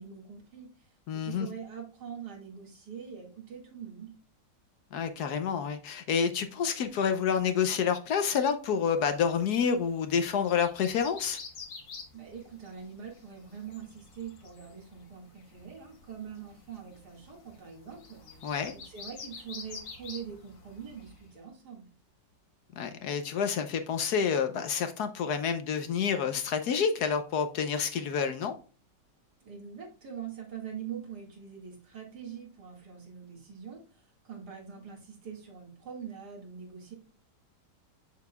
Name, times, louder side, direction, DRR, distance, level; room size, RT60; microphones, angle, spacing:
voice 1, 0.0-4.1 12.1-21.9 29.4-36.9, right 7 dB, 65° right, 2.5 m, -44 dB
voice 2, 1.1-1.5 4.9-11.4 18.4-18.7 22.8-28.5, left 7 dB, 70° left, 1.2 m, -28 dB
sound 1, 8.8-21.3, left 4 dB, 90° left, 2.1 m, -49 dB
6.9 x 6.7 x 2.3 m
omnidirectional pair, 1.9 m